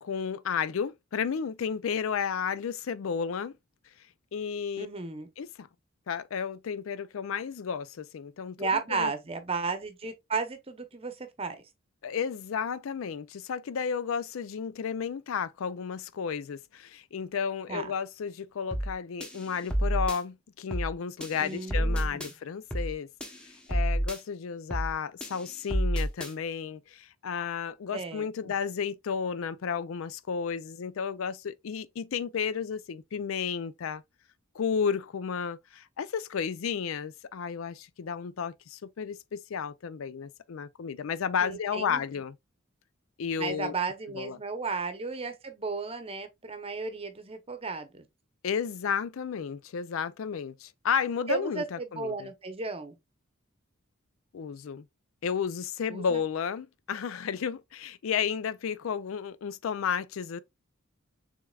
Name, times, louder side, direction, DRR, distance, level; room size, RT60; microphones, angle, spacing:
voice 1, 0.0-3.5 4.3-4.9 5.4-5.7 6.1-9.1 12.0-23.1 23.7-34.0 34.5-42.4 43.2-43.8 44.2-44.4 48.4-52.3 54.3-54.8 55.2-60.4, left 6 dB, 75° left, 0.4 m, -32 dB
voice 2, 4.8-5.3 8.6-11.6 17.7-17.9 21.4-22.3 27.9-28.5 41.4-42.0 43.4-48.0 51.3-53.0 55.9-56.2, right 4 dB, 30° right, 0.8 m, -34 dB
sound 1, 18.7-18.9 19.2-20.2 20.7-20.9 21.2-22.3 22.7-22.9 23.2-24.2 24.7-24.9 25.2-26.3, right 1 dB, 5° left, 0.9 m, -29 dB
6.4 x 3.5 x 2.3 m
head